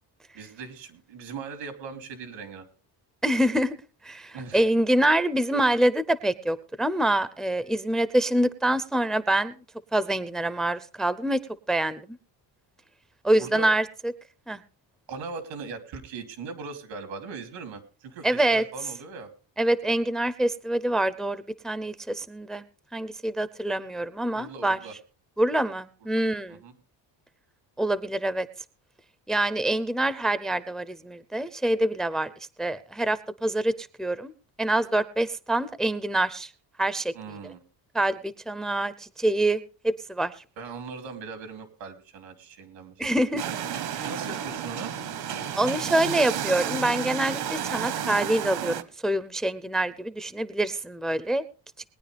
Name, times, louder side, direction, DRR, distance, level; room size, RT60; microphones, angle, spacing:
voice 1, 0.3-2.6 4.3-4.6 13.4-13.7 15.1-19.3 24.3-24.9 26.1-26.2 26.5-26.7 37.1-37.6 40.6-42.9 44.0-44.9, right 4 dB, 90° right, 8 dB, 3.0 m, -39 dB
voice 2, 3.2-3.7 4.0-9.5 9.9-11.4 11.7-12.2 13.2-13.9 14.5-14.6 18.2-18.6 19.6-22.6 22.9-24.8 25.4-26.6 27.8-28.5 29.3-32.3 32.6-33.7 34.0-34.3 34.6-36.5 36.8-37.4 37.9-40.3 43.0-43.4 45.6-51.4, right 1 dB, ahead, 16 dB, 0.5 m, -25 dB
sound 1, 43.4-48.8, right 9 dB, 65° right, 1.2 m, -31 dB
21.5 x 10.0 x 3.3 m, 0.38 s
cardioid pair, 145°, 43 cm